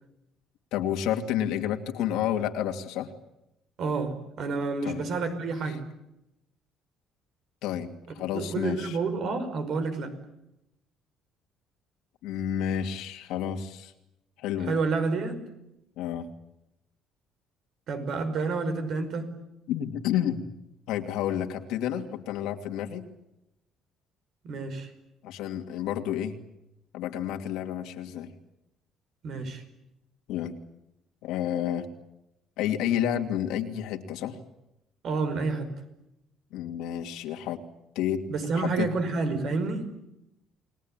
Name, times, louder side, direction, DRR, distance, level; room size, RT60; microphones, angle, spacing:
voice 1, 0.7-3.1 4.8-5.0 7.6-9.0 12.2-13.9 14.4-14.8 16.0-16.3 19.7-20.4 20.9-23.0 25.2-26.3 26.9-28.3 30.3-30.5 31.2-31.9 32.6-34.4 36.5-37.6 37.9-38.2 38.5-38.9, left 10 dB, 85° left, 5 dB, 2.6 m, -30 dB
voice 2, 3.8-5.8 8.3-10.1 14.6-15.4 17.9-19.3 24.4-24.9 29.2-29.6 35.0-35.7 38.3-39.9, right 4 dB, 50° right, 9 dB, 5.2 m, -29 dB
29.5 x 21.0 x 9.1 m, 0.89 s
cardioid pair, 150°, 0 cm